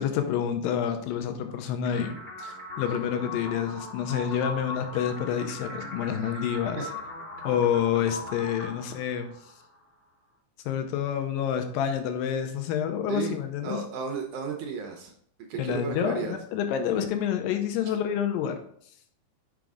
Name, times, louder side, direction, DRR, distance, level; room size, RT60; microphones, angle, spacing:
voice 1, 0.0-6.9 7.4-9.3 10.7-13.8 15.6-18.6, left 8 dB, 80° left, 6 dB, 2.5 m, -28 dB
sound 1, 1.8-9.8, left 2 dB, 45° left, 0.7 m, -39 dB
voice 2, 13.6-15.1 15.5-16.4, right 6 dB, 75° right, 2 dB, 2.0 m, -33 dB
6.2 x 5.1 x 3.5 m, 0.66 s
omnidirectional pair, 4.1 m